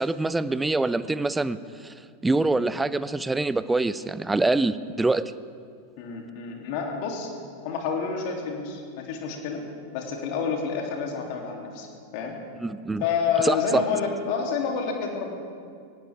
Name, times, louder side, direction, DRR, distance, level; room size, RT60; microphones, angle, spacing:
voice 1, 0.0-1.6 1.8-1.9 2.2-5.3 12.6-13.0 13.4-13.8, right 2 dB, 10° right, 16 dB, 0.5 m, -25 dB
voice 2, 6.0-7.3 7.6-9.6 9.9-11.9 12.1-12.4 13.0-15.3, left 5 dB, 45° left, 1 dB, 3.0 m, -28 dB
22.5 x 18.0 x 3.5 m, 2.3 s
figure-of-eight pair, 90°, 0 cm